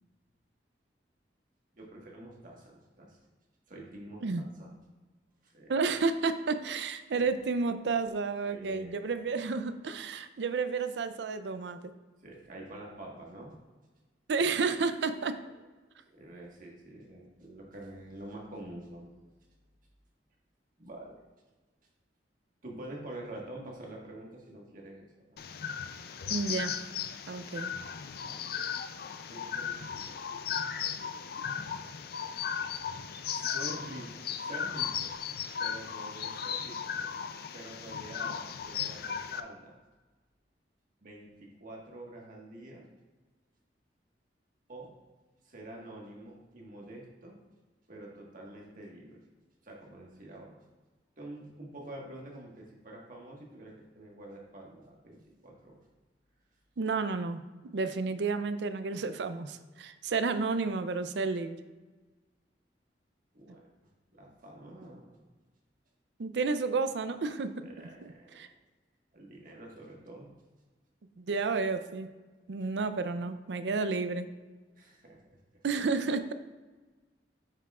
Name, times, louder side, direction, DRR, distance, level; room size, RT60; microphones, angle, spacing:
voice 1, 1.7-3.2 3.7-4.7 5.4-5.7 7.1-7.2 8.5-9.1 12.2-13.5 16.1-19.1 20.8-21.2 22.6-25.5 28.1-28.4 29.3-30.3 33.3-35.1 35.6-37.1 37.5-39.8 41.0-42.9 44.7-44.9 45.4-47.4 47.9-49.2 49.6-50.6 51.2-55.8 63.3-63.6 64.1-65.1 67.6-68.4 69.1-70.3 74.8-75.2, right 1 dB, 50° right, -2 dB, 1.5 m, -47 dB
voice 2, 5.7-11.8 14.3-15.4 26.3-26.7 27.3-27.7 56.8-57.4 57.7-61.6 66.2-67.7 68.4-68.5 71.2-72.1 72.5-74.3 75.6-76.3, right 4 dB, 75° right, 10 dB, 0.5 m, -31 dB
sound 1, 25.4-39.4, left 7 dB, 60° left, 0.4 m, -36 dB
8.8 x 5.9 x 2.4 m, 1.3 s
head